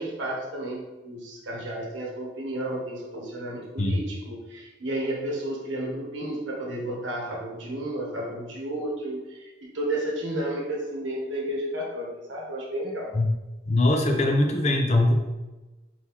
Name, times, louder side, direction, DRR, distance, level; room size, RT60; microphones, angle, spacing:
voice 1, 0.0-13.1, right 1 dB, 70° right, -2 dB, 1.0 m, -32 dB
voice 2, 13.7-15.1, left 1 dB, 35° left, 2 dB, 0.6 m, -21 dB
4.3 x 3.7 x 3.0 m, 1.1 s
head